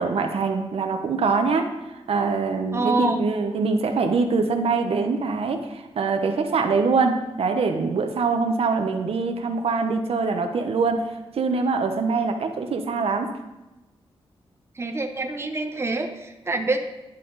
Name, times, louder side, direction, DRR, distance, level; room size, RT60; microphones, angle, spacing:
voice 1, 0.0-1.7 2.1-13.3, right 4 dB, 70° right, 6 dB, 0.8 m, -24 dB
voice 2, 2.7-3.2 14.8-16.8, right 2 dB, 25° right, 5 dB, 0.7 m, -26 dB
10.5 x 5.7 x 3.9 m, 1.0 s
wide cardioid pair, 100°, 10 cm